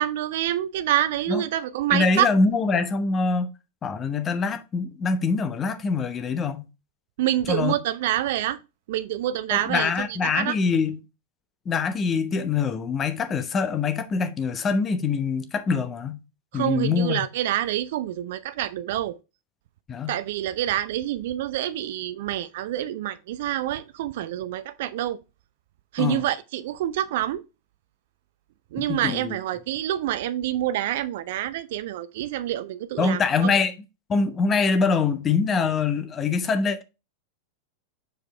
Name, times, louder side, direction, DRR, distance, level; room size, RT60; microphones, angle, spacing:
voice 1, 0.0-2.3 7.2-8.6 8.9-9.9 10.3-10.6 16.5-19.2 20.1-25.2 25.9-27.4 28.7-33.5, right 13 dB, 55° right, 0.4 m, -27 dB
voice 2, 1.9-3.5 3.8-6.6 7.5-7.7 9.5-11.0 11.7-16.2 16.5-17.2 19.9-20.2 26.0-26.2 28.8-29.4 33.0-33.7 34.1-36.8, left 4 dB, 25° left, 0.9 m, -24 dB
6.5 x 4.8 x 3.2 m
figure-of-eight pair, 90°, 0 cm